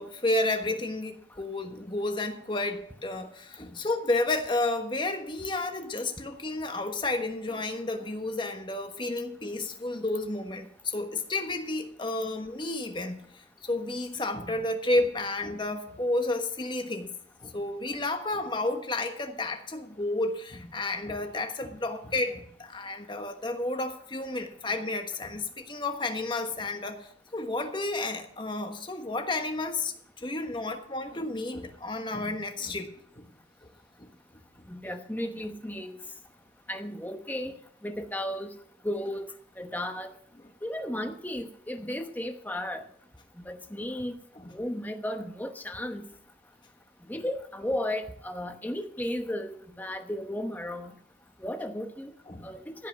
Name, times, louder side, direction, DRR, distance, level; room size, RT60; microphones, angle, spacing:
voice 1, 0.0-17.1 17.4-33.3 44.3-44.5 52.3-52.5, left 2 dB, 25° left, 5 dB, 1.3 m, -31 dB
voice 2, 34.7-36.0 36.7-37.5 37.8-38.5 38.8-39.2 39.6-40.1 40.6-42.8 43.4-44.2 44.5-46.1 47.1-50.9 51.4-52.1 52.4-52.9, left 1 dB, 10° left, 6 dB, 1.0 m, -34 dB
15.5 x 5.6 x 7.1 m, 0.63 s
head